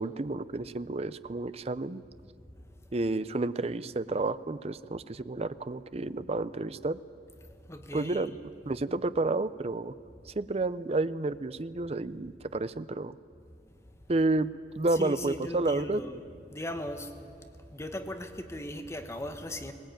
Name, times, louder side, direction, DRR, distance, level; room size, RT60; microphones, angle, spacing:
voice 1, 0.0-2.0 2.9-7.0 7.9-8.4 8.7-10.0 10.3-13.2 14.1-16.0, right 2 dB, 35° right, 15 dB, 0.5 m, -30 dB
voice 2, 7.7-8.3 14.9-16.2 16.5-17.3 17.7-19.7, left 1 dB, 15° left, 7 dB, 1.3 m, -38 dB
19.5 x 19.5 x 9.0 m, 2.3 s
head